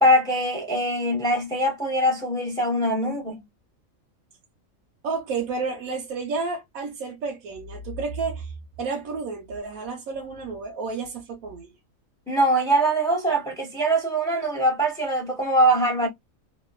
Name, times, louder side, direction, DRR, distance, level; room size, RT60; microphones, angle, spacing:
voice 1, 0.0-3.4 12.3-16.1, right 1 dB, 5° left, 0.5 m, -22 dB
voice 2, 5.0-11.7, right 4 dB, 90° right, 1.2 m, -31 dB
2.9 x 2.3 x 2.3 m
omnidirectional pair, 1.4 m